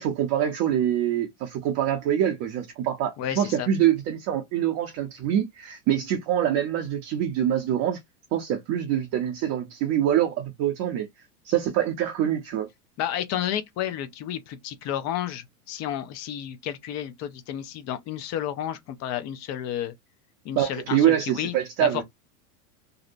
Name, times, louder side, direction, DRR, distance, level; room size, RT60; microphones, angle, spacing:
voice 1, 0.0-8.0 8.3-11.1 11.4-12.7 20.6-22.0, right 10 dB, 40° right, 0.6 m, -25 dB
voice 2, 3.2-3.7 13.0-19.9 20.4-21.5 21.8-22.0, left 10 dB, 35° left, 0.6 m, -31 dB
2.7 x 2.0 x 2.5 m
hypercardioid pair, 105°, 46 cm